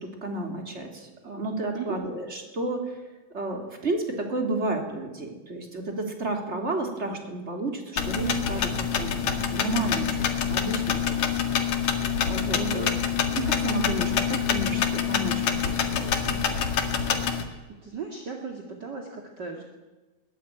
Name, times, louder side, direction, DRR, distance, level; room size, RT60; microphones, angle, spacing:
voice 1, 0.0-3.0 3.3-11.2 11.7-11.9 12.3-12.9 13.3-16.4, right 2 dB, 20° right, 3 dB, 3.1 m, -32 dB
sound 1, 8.0-17.4, left 7 dB, 50° left, 2.8 m, -26 dB
voice 2, 12.5-12.9 17.4-19.6, right 5 dB, 35° right, 2 dB, 1.9 m, -36 dB
21.5 x 21.0 x 9.3 m, 1.2 s
omnidirectional pair, 4.7 m